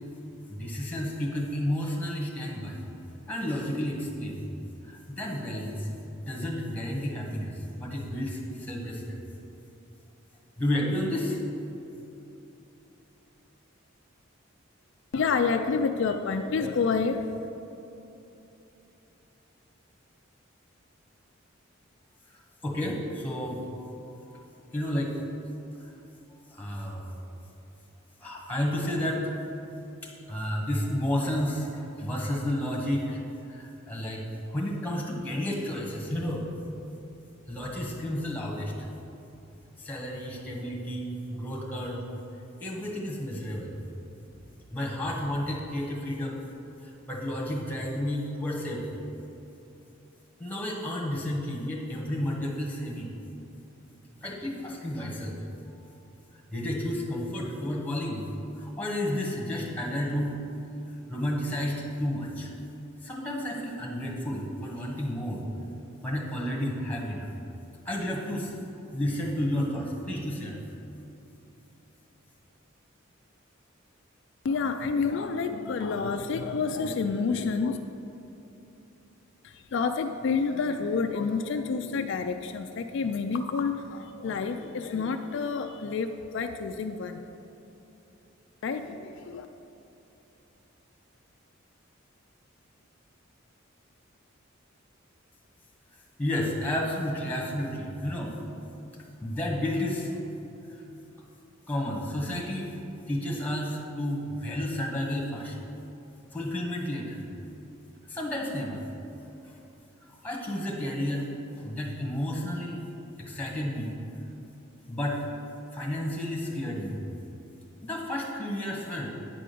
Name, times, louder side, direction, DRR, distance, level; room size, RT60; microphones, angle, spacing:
voice 1, 0.5-2.8 3.3-4.5 4.8-5.9 6.2-9.2 10.6-11.4 22.3-23.9 24.3-24.4 24.7-25.1 25.8-25.9 26.5-27.1 28.2-29.3 30.0-33.2 33.5-34.2 34.5-36.5 37.5-38.7 39.8-42.0 42.6-43.8 44.3-44.4 44.7-46.4 46.8-49.0 50.4-53.1 54.2-55.4 56.5-58.2 58.5-60.4 61.1-62.5 63.0-65.4 66.0-67.3 67.8-68.6 68.9-70.6 96.2-98.3 99.2-100.2 101.7-102.8 103.1-105.5 106.3-107.2 108.1-108.8 109.4-109.6 110.1-111.3 111.5-112.8 113.2-114.0 114.9-115.2 115.7-117.0 117.8-119.1, left 1 dB, 10° left, -2 dB, 1.4 m, -31 dB
voice 2, 15.1-17.5 74.4-77.8 79.4-87.2 88.6-89.5, left 5 dB, 60° left, 6 dB, 0.4 m, -29 dB
9.2 x 4.9 x 6.8 m, 3.0 s
head